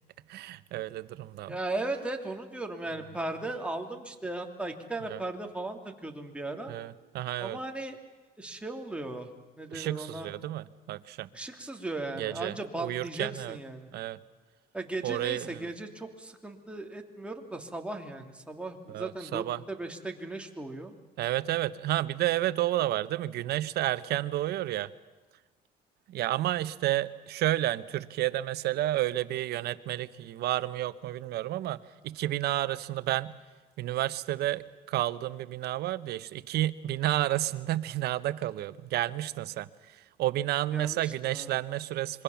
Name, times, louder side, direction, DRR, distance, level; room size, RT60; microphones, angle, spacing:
voice 1, 0.3-1.6 5.1-5.2 6.7-7.6 9.7-11.3 12.1-13.6 13.9-14.2 15.0-15.7 18.9-19.6 21.2-24.9 26.1-33.4 33.8-42.2, right 14 dB, 75° right, 15 dB, 1.0 m, -31 dB
voice 2, 1.5-6.7 7.4-8.0 8.4-9.3 9.6-10.3 11.3-13.9 14.7-20.9 40.7-41.6, right 2 dB, 5° right, 3 dB, 2.9 m, -37 dB
26.5 x 23.0 x 7.2 m, 1.3 s
cardioid pair, 110°, 17 cm